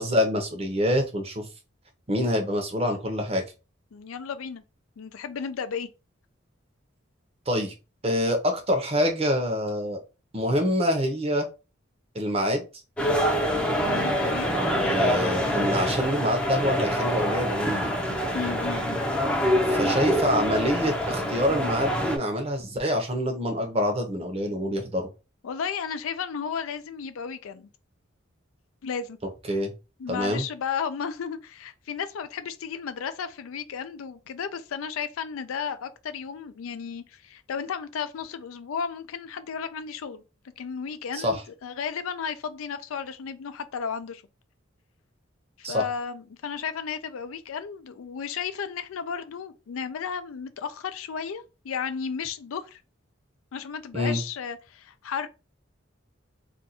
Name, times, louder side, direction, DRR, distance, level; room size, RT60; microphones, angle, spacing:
voice 1, 0.0-1.5 2.1-3.4 7.5-7.7 8.0-10.0 10.3-11.5 12.1-12.6 14.5-17.9 19.7-25.1 29.5-29.7 30.1-30.4 41.1-41.4 45.6-45.8 53.9-54.2, equal, 30° right, 0.7 m, -26 dB
voice 2, 3.9-4.6 5.0-5.9 14.0-14.5 18.3-19.0 25.4-27.7 28.8-29.2 30.0-40.2 40.6-44.2 45.6-52.8 53.5-55.3, left 6 dB, 85° left, 0.4 m, -34 dB
sound 1, 13.0-22.2, equal, 5° left, 0.5 m, -25 dB
2.6 x 2.3 x 4.1 m
head